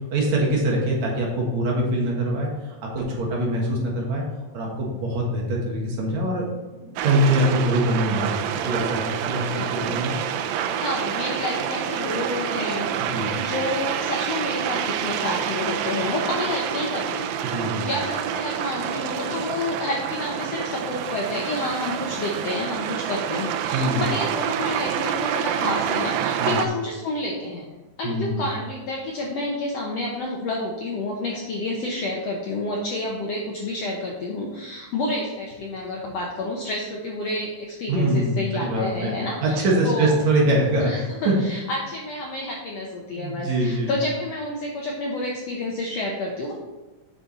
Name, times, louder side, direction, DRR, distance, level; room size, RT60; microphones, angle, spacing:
voice 1, 0.1-2.5 2.9-4.2 4.5-6.5 6.7-10.2 13.0-13.3 17.4-17.8 23.7-24.1 26.4-26.6 28.0-28.4 37.9-39.1 39.4-40.9 41.3-41.4 43.1-43.9, right 1 dB, 60° right, -2 dB, 2.6 m, -23 dB
sound 1, 7.0-26.7, right 9 dB, 90° right, 2.4 m, -27 dB
voice 2, 9.4-10.0 10.8-17.3 17.8-27.7 28.0-40.2 40.8-46.5, left 2 dB, 75° left, -1 dB, 1.5 m, -29 dB
8.4 x 6.7 x 4.2 m, 1.2 s
omnidirectional pair, 4.1 m